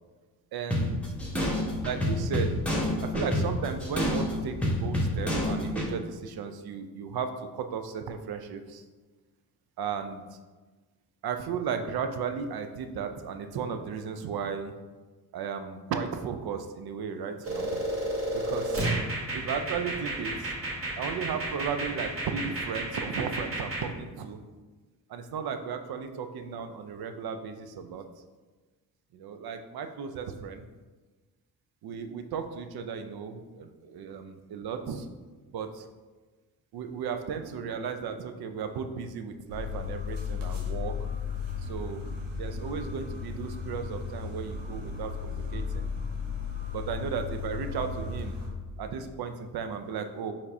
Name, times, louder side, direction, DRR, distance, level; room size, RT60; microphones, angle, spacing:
voice 1, 0.5-1.0 1.8-2.5 3.0-8.8 9.8-10.4 11.2-14.7 15.3-17.8 18.3-18.9 19.3-20.5 21.0-24.4 25.1-28.1 29.1-30.7 31.8-35.1 35.5-35.9 36.7-41.1 41.6-42.0 42.4-45.9 46.7-48.4 48.8-50.3, right 6 dB, 50° right, 7 dB, 0.5 m, -35 dB
sound 1, 0.7-5.9, left 1 dB, 5° left, 1.2 m, -29 dB
sound 2, 17.4-23.9, right 1 dB, 25° right, 1.2 m, -32 dB
sound 3, 39.5-48.5, left 5 dB, 70° right, 1.1 m, -35 dB
4.5 x 3.5 x 2.7 m, 1.3 s
hypercardioid pair, 45°, 49 cm